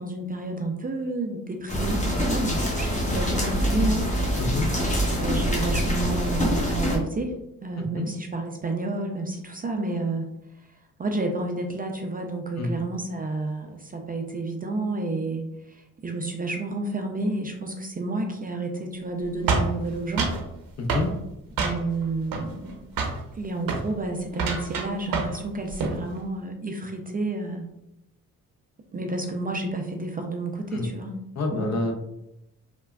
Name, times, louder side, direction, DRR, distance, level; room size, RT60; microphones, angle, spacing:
voice 1, 0.0-4.1 5.0-10.3 10.5-20.3 21.6-22.8 23.3-27.7 28.9-31.2 31.5-31.8, right 2 dB, 25° right, 3 dB, 0.4 m, -30 dB
sound 1, 1.7-7.0, equal, 20° left, 0.9 m, -25 dB
voice 2, 4.4-4.7 7.8-8.1 12.6-12.7 20.8-21.1 30.7-30.9 31.4-31.9, left 2 dB, 45° left, 4 dB, 0.6 m, -27 dB
sound 2, 19.5-20.4 20.9-21.1 21.6-22.0 22.3-22.7 23.0-23.2 23.6-23.9 24.3-25.4 25.7-26.0, right 4 dB, 70° right, 0.6 m, -26 dB
3.3 x 2.2 x 2.2 m, 0.85 s
supercardioid pair, 60°, 37 cm